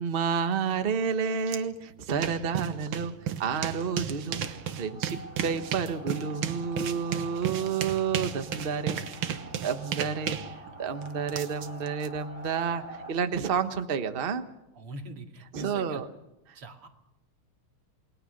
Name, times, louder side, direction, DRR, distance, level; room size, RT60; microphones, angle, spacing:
voice 1, 0.0-3.1 3.4-4.4 4.7-9.0 9.6-10.4 10.8-14.4 15.5-16.1, right 6 dB, 35° right, 9 dB, 1.1 m, -30 dB
sound 1, 1.5-1.6 1.9-12.1, right 9 dB, 75° right, 2.1 m, -34 dB
sound 2, 4.0-13.1, right 1 dB, 20° left, 4.0 m, -46 dB
voice 2, 14.7-16.0 16.5-16.9, right 1 dB, 90° right, 4 dB, 3.3 m, -42 dB
29.0 x 21.0 x 6.6 m, 0.88 s
omnidirectional pair, 2.4 m